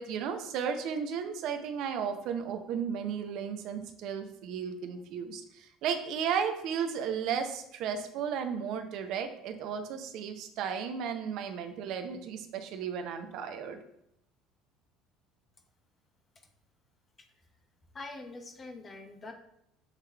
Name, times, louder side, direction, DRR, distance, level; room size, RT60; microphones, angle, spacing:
voice 1, 0.0-13.8, right 7 dB, 65° right, 6 dB, 0.6 m, -34 dB
voice 2, 17.9-19.3, left 2 dB, 25° left, 5 dB, 0.7 m, -44 dB
6.4 x 3.2 x 2.4 m, 0.75 s
cardioid pair, 125°, 0 cm